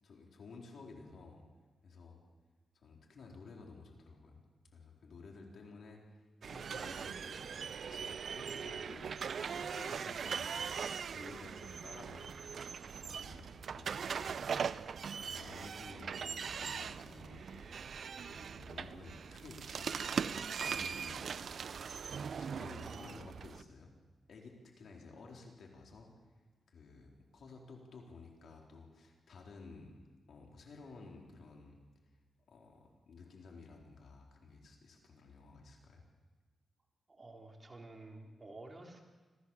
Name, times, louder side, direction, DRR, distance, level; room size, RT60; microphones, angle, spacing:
voice 1, 0.0-1.5 1.8-2.2 2.7-4.4 4.7-10.8 11.1-14.8 15.1-17.7 18.2-20.3 20.6-21.5 22.4-23.9 24.3-26.1 26.7-29.9 30.3-31.8 32.5-36.0, left 4 dB, 70° left, 0 dB, 4.2 m, -54 dB
sound 1, 6.4-23.6, right 6 dB, 65° right, 0.6 m, -40 dB
voice 2, 22.8-23.2 37.1-39.0, right 2 dB, 30° right, 1 dB, 3.6 m, -51 dB
26.0 x 15.5 x 7.3 m, 1.3 s
cardioid pair, 95°, 0 cm